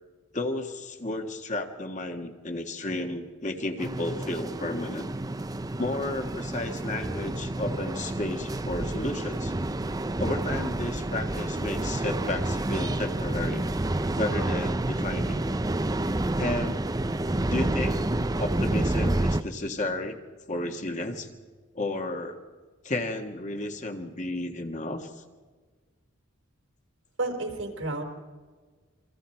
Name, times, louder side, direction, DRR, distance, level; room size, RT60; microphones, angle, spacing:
voice 1, 0.3-5.1 5.8-9.5 10.2-13.6 14.2-15.5 16.4-16.9 17.4-18.0 18.4-20.2 20.5-21.3 21.7-22.4 22.8-25.2, left 2 dB, 35° left, 4 dB, 1.7 m, -32 dB
sound 1, 3.8-19.4, right 1 dB, 20° right, 0.6 m, -29 dB
voice 2, 27.2-28.0, right 2 dB, 80° right, 3 dB, 4.3 m, -31 dB
29.0 x 24.0 x 4.5 m, 1.4 s
head